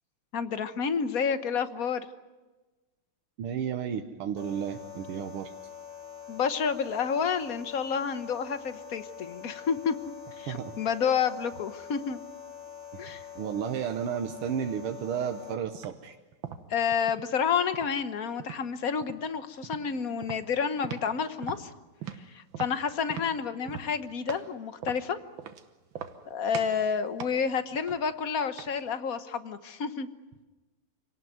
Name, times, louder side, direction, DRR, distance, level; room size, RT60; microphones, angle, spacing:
voice 1, 0.3-2.1 6.3-9.9 10.4-12.2 13.0-13.2 16.7-21.7 22.3-25.2 26.3-30.1, left 6 dB, 50° left, 11 dB, 1.4 m, -29 dB
voice 2, 3.4-5.5 10.5-10.7 12.9-13.0 13.4-16.1, right 8 dB, 90° right, 6 dB, 2.0 m, -32 dB
sound 1, 4.4-15.5, left 7 dB, 25° left, 2.6 m, -45 dB
sound 2, 15.7-16.0 16.4-17.3 17.7-18.6 19.0-19.3 19.6-19.9 20.2-21.2 21.4-24.5 24.8-25.6 25.9-26.3 26.5-26.8 27.2-28.9, right 8 dB, 65° right, 1.9 m, -41 dB
26.5 x 18.5 x 9.4 m, 1.2 s
omnidirectional pair, 2.4 m